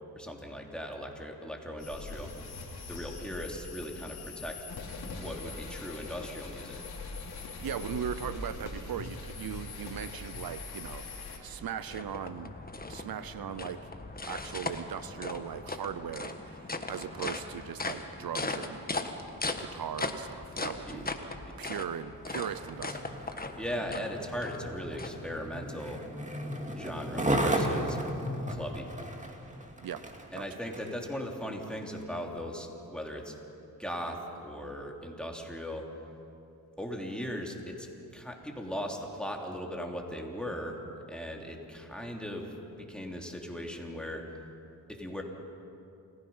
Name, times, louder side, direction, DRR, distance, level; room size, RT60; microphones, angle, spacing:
voice 1, 0.1-2.5 2.9-4.6 5.2-6.8 20.9-21.1 23.6-26.0 26.7-28.0 28.5-28.9 30.3-33.3 33.8-35.9 36.8-37.9 38.1-40.8 41.1-44.3 44.9-45.2, equal, ahead, 0 dB, 3.2 m, -38 dB
sound 1, 1.8-11.4, left 3 dB, 85° left, 3.1 m, -42 dB
voice 2, 7.6-11.0 11.4-12.5 12.9-13.8 14.3-18.9 19.6-21.1 21.6-23.1 29.8-30.0 30.3-30.6, right 9 dB, 70° right, 13 dB, 0.7 m, -38 dB
sound 2, 11.2-25.7, left 2 dB, 25° left, 1.5 m, -39 dB
Skateboard, 22.2-31.0 31.6-31.8, right 1 dB, 20° right, 2.5 m, -35 dB
28.5 x 16.5 x 5.7 m, 2.7 s
cardioid pair, 65°, 37 cm